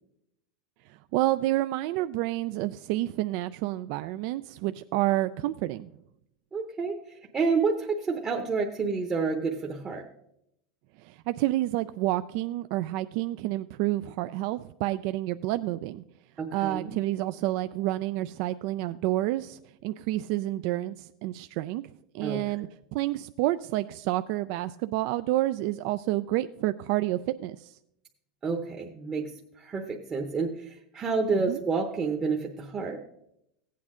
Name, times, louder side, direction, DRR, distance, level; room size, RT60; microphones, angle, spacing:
voice 1, 0.9-5.9 11.0-16.0 16.5-21.8 22.1-27.7 31.3-31.6, right 16 dB, 55° right, 11 dB, 0.3 m, -29 dB
voice 2, 6.5-10.0 16.4-16.9 22.2-22.4 28.4-33.0, right 4 dB, 20° right, 1 dB, 0.9 m, -29 dB
15.5 x 8.5 x 3.7 m, 0.81 s
supercardioid pair, 130°, 4 cm